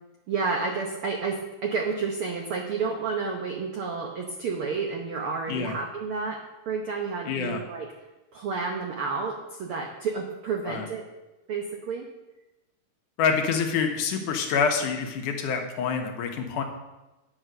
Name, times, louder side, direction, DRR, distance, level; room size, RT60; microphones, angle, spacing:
voice 1, 0.3-6.4 6.7-7.9 8.3-11.0 11.5-12.1, right 4 dB, 75° right, 1 dB, 1.3 m, -30 dB
voice 2, 7.3-7.6 10.7-10.9 13.2-16.6, left 6 dB, 75° left, 4 dB, 2.4 m, -26 dB
9.4 x 6.7 x 6.2 m, 1.0 s
omnidirectional pair, 3.8 m